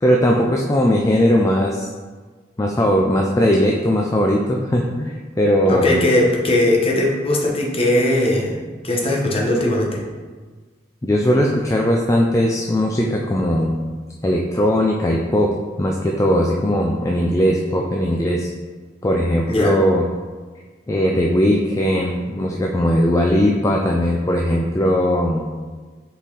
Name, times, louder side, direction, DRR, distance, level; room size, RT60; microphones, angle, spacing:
voice 1, 0.0-1.9 2.6-6.0 11.0-13.8 14.2-15.5 15.8-18.5 19.0-20.0 20.9-25.5, equal, 20° left, 0 dB, 0.4 m, -19 dB
voice 2, 5.7-8.6 8.8-10.0 19.5-19.8, left 1 dB, 35° left, -2 dB, 1.0 m, -19 dB
6.1 x 4.1 x 4.0 m, 1.4 s
head